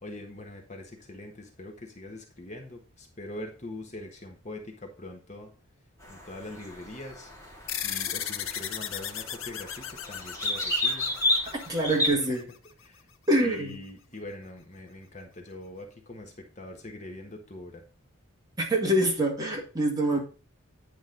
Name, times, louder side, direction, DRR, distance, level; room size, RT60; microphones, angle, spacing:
voice 1, 0.0-5.5 6.1-7.3 7.8-11.1 12.1-12.4 12.8-13.1 13.4-17.8, left 1 dB, 35° left, 2 dB, 1.3 m, -43 dB
sound 1, 6.0-12.1, left 1 dB, 15° left, 2.3 m, -32 dB
sound 2, 7.7-12.5, left 9 dB, 70° left, 0.7 m, -36 dB
voice 2, 11.7-12.5 13.3-13.8 18.6-20.2, right 1 dB, 20° right, -1 dB, 2.0 m, -25 dB
9.3 x 5.2 x 3.8 m, 0.36 s
head